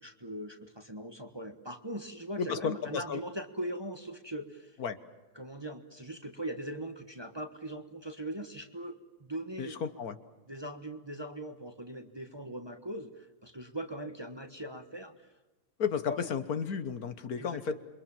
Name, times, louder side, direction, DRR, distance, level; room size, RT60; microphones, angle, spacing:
voice 1, 0.0-4.8 5.3-9.8 10.5-15.3 16.1-16.3 17.4-17.8, right 1 dB, 15° right, 7 dB, 1.3 m, -40 dB
voice 2, 2.4-3.2 4.8-5.0 9.6-10.2 15.8-17.8, left 6 dB, 70° left, 11 dB, 1.6 m, -33 dB
28.0 x 23.5 x 7.2 m, 1.1 s
omnidirectional pair, 1.7 m